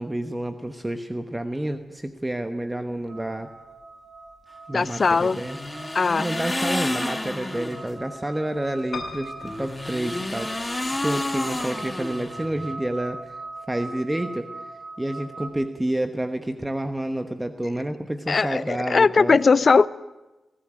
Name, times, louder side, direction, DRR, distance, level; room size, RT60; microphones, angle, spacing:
voice 1, 0.0-3.5 4.7-5.6 6.2-13.2 13.7-14.5 15.0-19.4, right 1 dB, 15° right, 7 dB, 1.1 m, -29 dB
sound 1, 3.1-15.5, right 3 dB, 65° right, 3.9 m, -41 dB
voice 2, 4.7-5.4 5.9-6.3 18.3-19.9, left 4 dB, 50° left, 17 dB, 0.6 m, -19 dB
sound 2, 4.8-7.9 9.4-12.7, left 2 dB, 20° left, 1.8 m, -31 dB
Piano, 8.9-10.9 11.5-12.2 12.6-12.7 12.9-13.0, left 4 dB, 75° left, 2.5 m, -39 dB
19.5 x 16.0 x 8.9 m, 1.1 s
cardioid pair, 80°, 0 cm